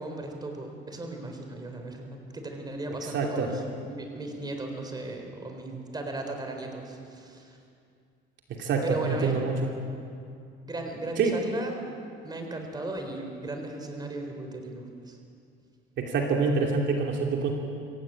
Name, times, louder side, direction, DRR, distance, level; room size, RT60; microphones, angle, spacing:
voice 1, 0.0-7.6 8.8-9.4 10.7-11.7 12.2-15.2, right 2 dB, 20° right, 3 dB, 3.7 m, -36 dB
voice 2, 3.0-3.5 8.5-9.6 11.2-11.4 16.0-17.5, right 4 dB, 60° right, 1 dB, 2.8 m, -26 dB
25.5 x 15.5 x 8.7 m, 2.4 s
cardioid pair, 130°, 21 cm